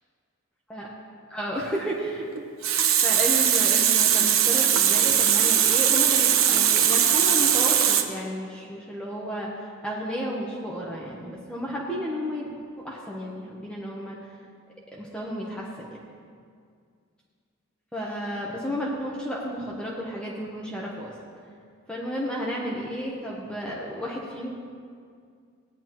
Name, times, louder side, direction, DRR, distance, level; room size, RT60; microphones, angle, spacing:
voice 1, 1.3-2.3 3.0-9.5 9.8-12.5 12.8-14.2 14.9-15.9 17.9-21.1 21.9-24.5, equal, 5° left, -5 dB, 1.1 m, -32 dB
Water tap faucet, 2.4-8.0, right 9 dB, 90° right, 0.8 m, -20 dB
16.5 x 10.0 x 3.0 m, 2.2 s
head